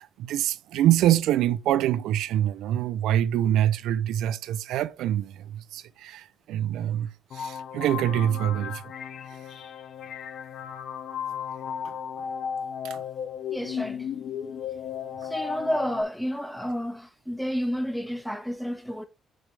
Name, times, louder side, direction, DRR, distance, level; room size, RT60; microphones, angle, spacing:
voice 1, 0.0-8.9 9.4-9.5 11.8-11.9 12.8-13.0 15.2-15.3, right 12 dB, 85° right, 0.4 m, -25 dB
sound 1, 7.3-16.0, left 7 dB, 65° left, 0.6 m, -35 dB
voice 2, 13.5-14.1 15.2-19.1, equal, ahead, 1.2 m, -30 dB
6.7 x 5.1 x 3.4 m
cardioid pair, 90°, 0 cm